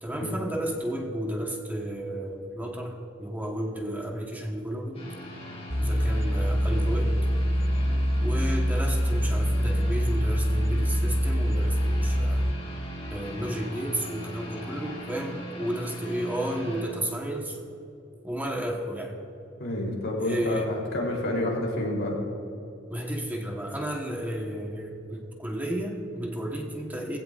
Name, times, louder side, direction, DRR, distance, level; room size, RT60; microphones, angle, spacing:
voice 1, 0.0-5.1 5.8-7.1 8.2-12.5 13.1-17.6 18.2-19.2 20.2-20.7 22.9-27.2, right 1 dB, 10° right, 0 dB, 1.2 m, -32 dB
sound 1, 4.9-16.8, equal, 35° left, 3.9 m, -40 dB
sound 2, 5.7-12.5, equal, 30° right, 1.0 m, -24 dB
voice 2, 19.6-22.2, left 1 dB, 70° left, -2 dB, 3.4 m, -29 dB
21.0 x 16.0 x 2.5 m, 2.7 s
head